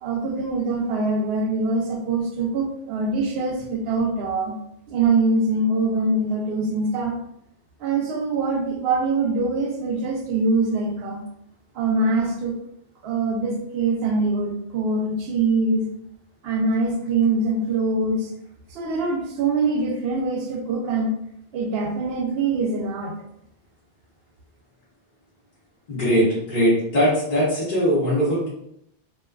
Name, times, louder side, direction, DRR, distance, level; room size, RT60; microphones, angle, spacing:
voice 1, 0.0-4.5 4.9-7.2 7.8-11.2 11.7-12.5 13.0-15.9 16.4-18.3 18.7-21.1 21.5-23.1, right 3 dB, 65° right, 1 dB, 0.8 m, -23 dB
voice 2, 25.9-28.5, equal, 45° left, -9 dB, 0.9 m, -20 dB
2.4 x 2.2 x 2.2 m, 0.76 s
omnidirectional pair, 1.2 m